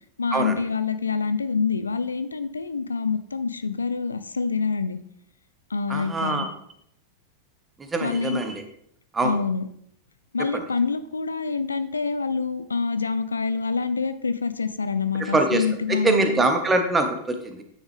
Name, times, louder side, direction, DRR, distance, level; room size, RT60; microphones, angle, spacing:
voice 1, 0.2-5.0 5.7-6.5 8.0-8.4 9.2-9.7 10.3-16.4, left 5 dB, 75° left, 12 dB, 0.4 m, -26 dB
voice 2, 5.9-6.5 7.8-8.6 9.1-9.4 10.5-10.6 15.2-17.6, right 2 dB, 15° right, 6 dB, 1.2 m, -24 dB
9.3 x 6.3 x 3.4 m, 0.69 s
figure-of-eight pair, 90°, 0 cm